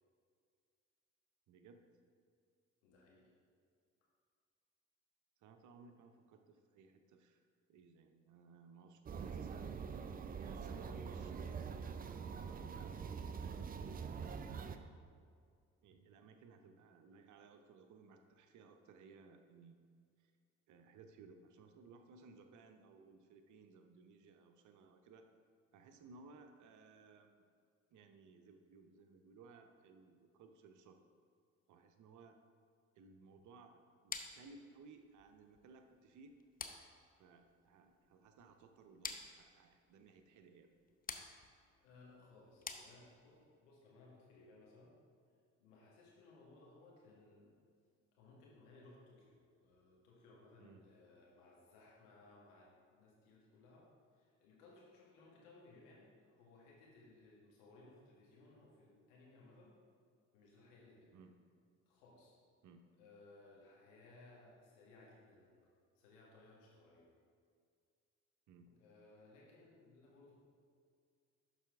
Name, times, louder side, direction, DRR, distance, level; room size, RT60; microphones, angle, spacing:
voice 1, 1.5-1.8 5.4-7.4 7.7-10.0 10.3-12.7 13.6-15.0 15.8-19.8 20.2-20.3 20.7-25.3 25.7-27.5 27.9-31.0 31.7-32.4 32.9-36.4 37.2-40.7 50.6-50.8 61.1-61.3 62.6-62.9 68.5-68.7, right 4 dB, 50° right, 6 dB, 0.8 m, -61 dB
voice 2, 2.8-3.3 25.9-26.1 41.8-45.0 45.6-47.6 48.1-59.8 60.3-61.1 61.9-62.3 63.0-65.5 66.0-67.1 68.6-70.3, left 2 dB, 75° left, -4 dB, 1.8 m, -62 dB
sound 1, 9.1-14.8, right 6 dB, 25° right, 0.5 m, -44 dB
sound 2, 34.1-43.4, left 5 dB, 25° left, 0.7 m, -51 dB
11.5 x 4.2 x 3.6 m, 2.2 s
figure-of-eight pair, 45°, 37 cm